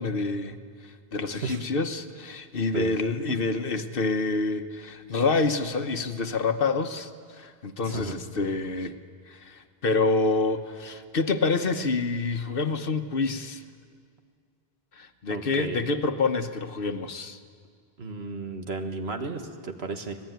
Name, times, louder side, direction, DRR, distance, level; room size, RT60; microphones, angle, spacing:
voice 1, 0.0-8.9 9.3-13.6 14.9-17.4, left 3 dB, 60° left, 8 dB, 1.2 m, -27 dB
voice 2, 7.8-8.2 15.3-15.8 18.0-20.2, right 3 dB, 85° right, 5 dB, 1.9 m, -34 dB
25.5 x 18.5 x 9.3 m, 2.1 s
omnidirectional pair, 1.0 m